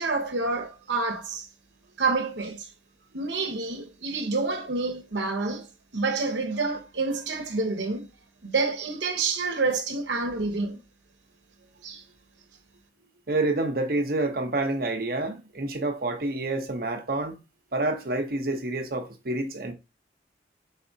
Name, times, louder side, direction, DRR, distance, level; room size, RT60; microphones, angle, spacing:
voice 1, 0.0-1.5 2.0-2.7 3.1-5.7 5.9-8.1 8.4-10.8 11.8-12.0, right 3 dB, 85° right, 1.0 m, -28 dB
voice 2, 13.3-17.4 17.7-19.7, right 2 dB, 55° right, 0.9 m, -28 dB
4.7 x 4.1 x 2.7 m
head